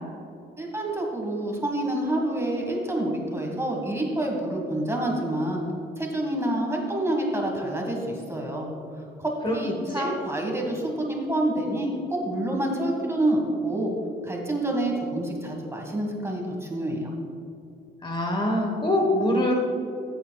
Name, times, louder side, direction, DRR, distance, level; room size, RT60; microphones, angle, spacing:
voice 1, 0.6-5.7 6.0-8.7 8.9-13.9 14.2-17.1, right 1 dB, 15° right, 0 dB, 1.7 m, -28 dB
voice 2, 18.0-19.5, left 1 dB, 25° left, 0 dB, 1.2 m, -24 dB
14.0 x 6.9 x 2.4 m, 2.5 s
cardioid pair, 90°, 20 cm